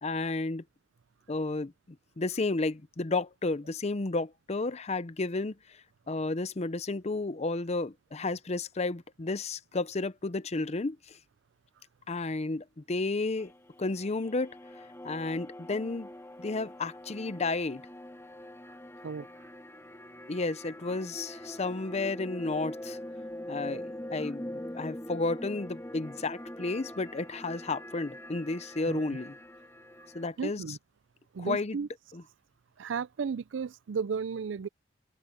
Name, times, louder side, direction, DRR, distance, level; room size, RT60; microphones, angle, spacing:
voice 1, 0.0-0.6 1.3-1.7 2.2-5.6 6.1-11.2 12.1-13.5 13.8-14.6 15.0-16.1 16.4-17.8 20.3-23.0 23.5-29.3 30.1-30.6 31.4-31.8 32.1-32.2, left 3 dB, 35° left, 0.7 m, -32 dB
sound 1, 13.4-30.3, left 1 dB, 15° left, 2.5 m, -43 dB
voice 2, 19.0-19.5 28.8-29.0 30.0-30.1 30.4-30.8 31.3-31.9 32.8-34.7, right 5 dB, 80° right, 0.4 m, -34 dB
head